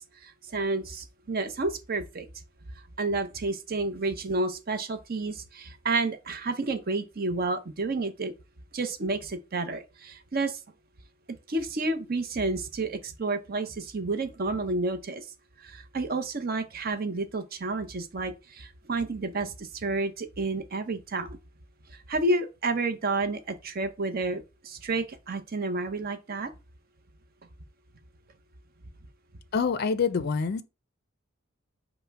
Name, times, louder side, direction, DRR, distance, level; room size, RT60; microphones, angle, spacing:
voice 1, 0.2-2.3 3.0-8.3 8.7-10.6 11.5-15.3 15.6-21.4 22.1-26.5, right 3 dB, 45° right, 0.7 m, -30 dB
voice 2, 29.5-30.6, left 5 dB, 50° left, 0.4 m, -26 dB
5.5 x 2.1 x 4.5 m
head